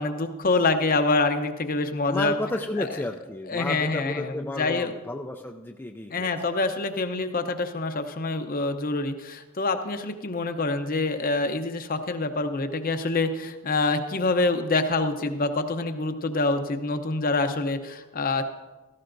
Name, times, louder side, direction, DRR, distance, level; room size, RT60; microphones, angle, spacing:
voice 1, 0.0-2.3 2.8-2.9 3.5-4.9 6.1-18.4, left 3 dB, 40° left, 7 dB, 0.7 m, -26 dB
voice 2, 2.1-6.3, left 1 dB, 10° left, 2 dB, 0.4 m, -32 dB
16.5 x 14.0 x 2.6 m, 1.2 s
head